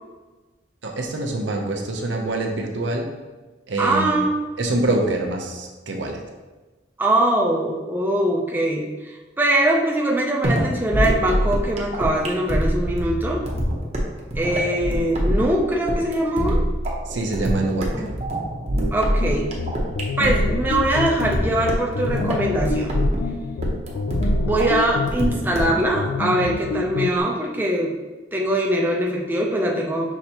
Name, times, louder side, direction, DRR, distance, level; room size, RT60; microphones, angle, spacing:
voice 1, 0.8-3.1 3.7-4.2 4.6-6.2 17.1-18.1, right 2 dB, 75° right, 1 dB, 0.7 m, -25 dB
voice 2, 3.8-4.4 7.0-13.4 14.4-16.6 18.9-19.5 20.2-22.9 24.4-27.9 28.3-30.1, right 1 dB, 10° right, -2 dB, 0.5 m, -22 dB
sound 1, 10.4-25.9, equal, 35° right, 0.7 m, -24 dB
sound 2, 19.2-27.2, left 4 dB, 65° left, 0.3 m, -28 dB
5.7 x 3.2 x 2.9 m, 1.2 s
head